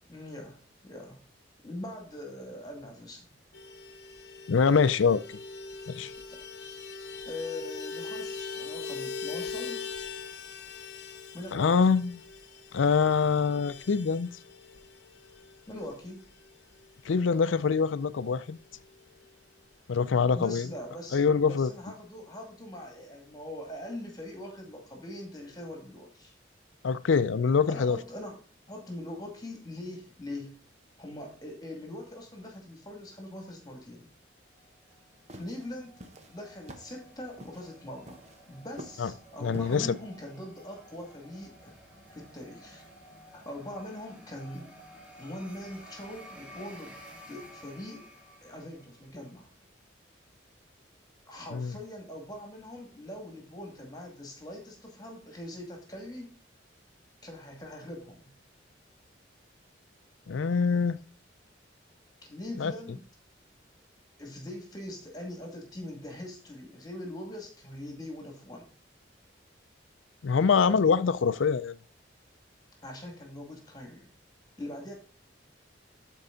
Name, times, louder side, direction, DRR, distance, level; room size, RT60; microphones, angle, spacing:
voice 1, 0.1-1.2 1.6-3.3 6.3-6.4 7.2-9.9 11.3-11.8 15.7-16.3 20.3-26.3 27.7-28.3 28.7-30.6 31.0-34.1 35.3-36.0 36.3-38.2 38.5-41.8 42.1-42.9 43.3-44.7 45.2-48.1 48.4-49.5 51.3-56.4 57.2-58.3 62.2-63.0 64.2-68.7 72.8-74.1 74.6-74.9, left 1 dB, 20° left, 2.2 m, -42 dB
Vehicle horn car horn honking, 3.5-17.4 17.7-17.8 18.1-18.3 18.6-19.3, left 5 dB, 60° left, 0.8 m, -41 dB
voice 2, 4.5-5.2 5.9-6.1 11.5-12.2 12.7-14.3 17.0-18.6 19.9-20.7 21.1-21.7 26.8-28.0 39.0-39.1 39.4-39.9 51.5-51.7 60.3-61.0 62.6-62.7 70.2-71.7, left 5 dB, 85° left, 0.5 m, -24 dB
sound 1, 34.6-49.2, equal, 5° right, 2.6 m, -53 dB
sound 2, 34.9-39.9, right 1 dB, 35° right, 1.0 m, -47 dB
13.0 x 4.6 x 3.9 m
head